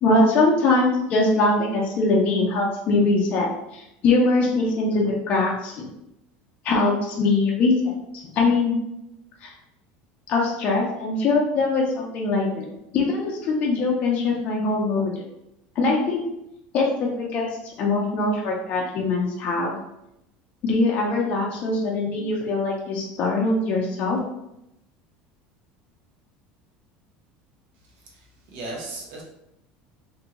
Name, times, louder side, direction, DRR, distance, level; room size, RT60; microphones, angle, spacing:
voice 1, 0.0-5.9 6.6-8.7 9.4-9.5 10.3-12.7 12.9-15.1 15.8-16.2 16.7-19.8 20.6-24.2, left 3 dB, 40° left, -2 dB, 0.5 m, -22 dB
voice 2, 27.9-29.2, right 2 dB, 60° right, -2 dB, 0.9 m, -37 dB
2.6 x 2.3 x 2.9 m, 0.84 s
cardioid pair, 155°, 4 cm